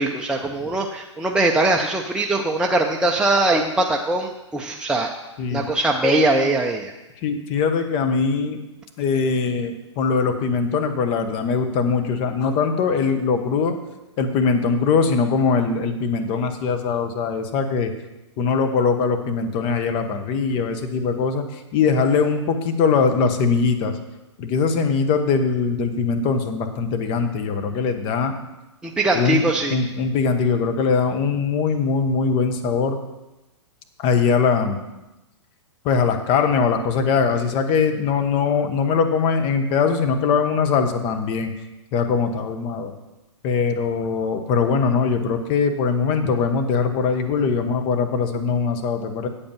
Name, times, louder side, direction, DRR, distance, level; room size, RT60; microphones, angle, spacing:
voice 1, 0.0-5.1 5.5-6.9 28.8-29.8, right 2 dB, 5° right, 0 dB, 0.5 m, -21 dB
voice 2, 7.2-8.6 9.0-13.8 14.2-17.9 18.4-21.4 21.7-23.9 24.4-28.3 29.1-29.4 29.7-33.0 34.0-34.8 35.8-41.5 41.9-42.9 43.4-49.3, left 5 dB, 35° left, 7 dB, 1.1 m, -21 dB
8.5 x 5.2 x 6.9 m, 1.0 s
hypercardioid pair, 120°, 15 cm